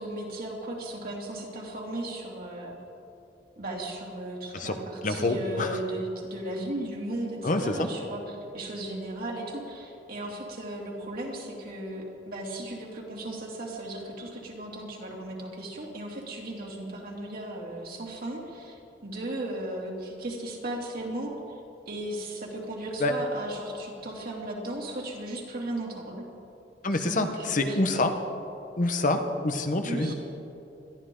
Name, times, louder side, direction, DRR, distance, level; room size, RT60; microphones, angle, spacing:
voice 1, 0.0-2.7 3.6-21.6 21.9-26.3 26.9-27.8 29.8-30.1, right 1 dB, 55° right, -2 dB, 2.7 m, -36 dB
voice 2, 5.0-5.8 7.4-7.9 23.0-23.2 26.8-28.1 28.8-30.1, left 2 dB, 45° left, 6 dB, 1.0 m, -26 dB
21.5 x 13.5 x 3.8 m, 2.8 s
head